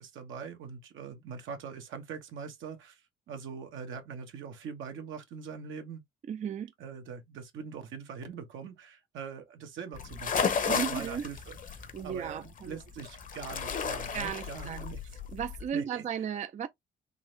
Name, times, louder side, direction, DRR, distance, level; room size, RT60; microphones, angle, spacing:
voice 1, 0.0-6.0 6.8-15.0 15.7-16.0, right 6 dB, 75° right, 1.1 m, -43 dB
voice 2, 6.3-6.7 10.6-11.3 11.9-12.8 14.1-14.9 15.3-16.7, right 8 dB, 35° right, 0.4 m, -35 dB
sound 1, 9.9-15.7, left 6 dB, 40° left, 0.8 m, -34 dB
3.8 x 2.5 x 3.1 m
cardioid pair, 90°, 20 cm